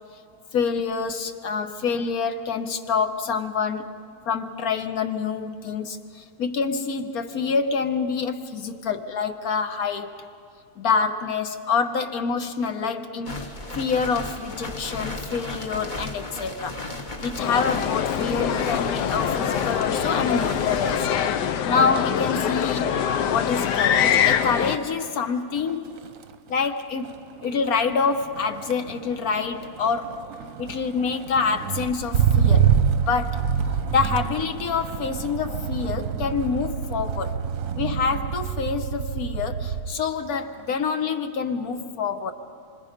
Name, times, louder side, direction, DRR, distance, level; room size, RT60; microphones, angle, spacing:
voice 1, 0.5-3.9 4.3-10.2 10.8-16.8 17.2-21.4 21.6-22.9 23.3-25.9 26.5-27.1 27.4-30.2 30.6-33.4 33.9-37.4 37.7-42.3, left 5 dB, 60° left, 8 dB, 1.4 m, -26 dB
sound 1, 13.2-21.0, left 2 dB, 30° left, 1.3 m, -35 dB
sound 2, 17.4-24.8, left 8 dB, 80° left, 1.4 m, -24 dB
Motor vehicle (road), 24.9-25.2 25.6-40.0 40.4-40.8, right 8 dB, 60° right, 1.0 m, -27 dB
26.5 x 25.0 x 5.2 m, 2.4 s
omnidirectional pair, 1.8 m